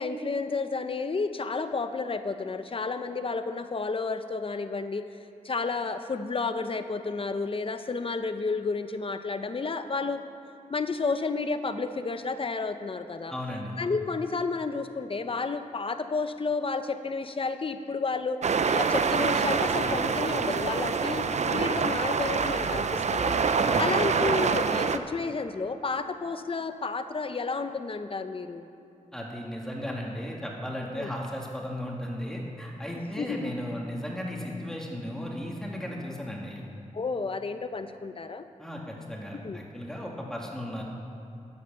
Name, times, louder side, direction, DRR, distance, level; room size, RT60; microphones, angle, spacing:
voice 1, 0.0-5.1 5.4-10.2 10.7-13.3 13.8-18.4 18.7-28.7 30.9-31.1 33.2-33.5 36.9-38.4 39.4-39.6, left 4 dB, 45° left, 9 dB, 0.7 m, -31 dB
voice 2, 13.3-13.7 19.6-20.1 23.6-23.9 29.1-36.7 38.6-40.8, left 1 dB, 5° left, -2 dB, 2.2 m, -36 dB
sound 1, 18.4-25.0, right 5 dB, 60° right, 0.6 m, -26 dB
12.5 x 8.6 x 6.8 m, 2.8 s
wide cardioid pair, 90°, 13 cm